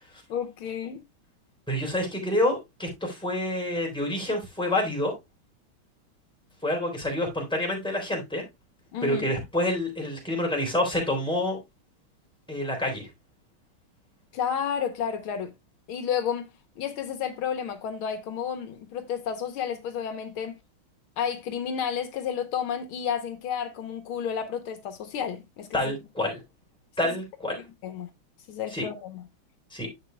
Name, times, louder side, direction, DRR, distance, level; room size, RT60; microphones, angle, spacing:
voice 1, 0.3-1.0 8.9-9.3 14.3-15.5 15.9-16.5 16.8-20.6 21.2-25.9 27.0-27.2 27.8-28.1 28.5-29.2, left 8 dB, 75° left, 1.8 m, -31 dB
voice 2, 1.7-5.1 6.6-8.4 9.0-11.6 12.5-13.1 25.7-26.4 27.0-27.6 28.7-28.8 29.7-29.9, left 1 dB, ahead, 3.5 m, -27 dB
10.5 x 7.6 x 2.2 m
omnidirectional pair, 2.3 m